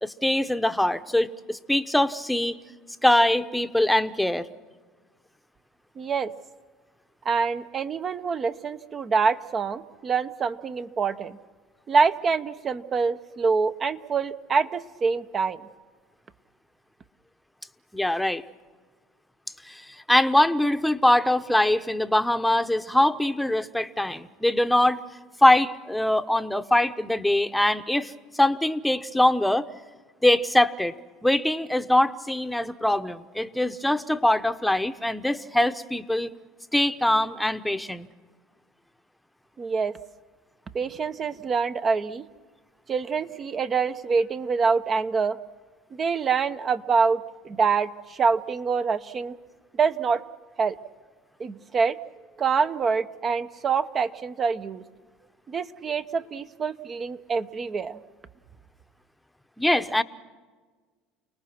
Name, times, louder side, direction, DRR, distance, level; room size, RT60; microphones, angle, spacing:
voice 1, 0.0-2.6 3.0-4.5 17.9-18.4 19.7-25.0 25.4-29.7 30.2-31.0 31.2-36.3 36.7-38.1 59.6-60.0, left 1 dB, 5° left, 10 dB, 1.0 m, -23 dB
voice 2, 6.0-6.3 7.2-11.4 11.9-15.6 39.6-39.9 40.7-42.3 42.9-45.4 45.9-49.3 49.8-50.2 50.6-50.8 51.4-52.0 52.4-54.8 55.5-58.0, right 5 dB, 35° right, 11 dB, 1.1 m, -25 dB
30.0 x 19.5 x 6.0 m, 1.4 s
supercardioid pair, 85°, 0 cm